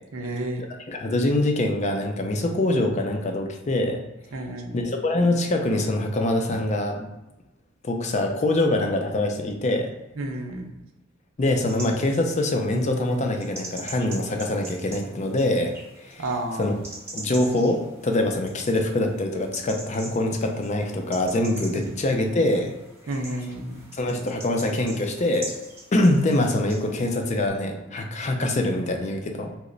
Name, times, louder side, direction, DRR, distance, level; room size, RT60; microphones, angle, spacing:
voice 1, 0.1-0.6 4.3-4.8 10.2-10.7 16.2-16.7 21.7-22.0 23.1-23.8, right 1 dB, 85° right, 3 dB, 0.6 m, -31 dB
voice 2, 0.9-4.0 4.7-7.1 7.8-9.9 11.4-15.7 16.0-16.2 16.6-16.7 17.1-22.7 23.9-25.5 25.9-29.5, left 1 dB, 35° left, 3 dB, 0.4 m, -24 dB
sound 1, 11.7-27.5, right 2 dB, 15° right, 0.7 m, -43 dB
3.0 x 2.1 x 3.8 m, 1.0 s
head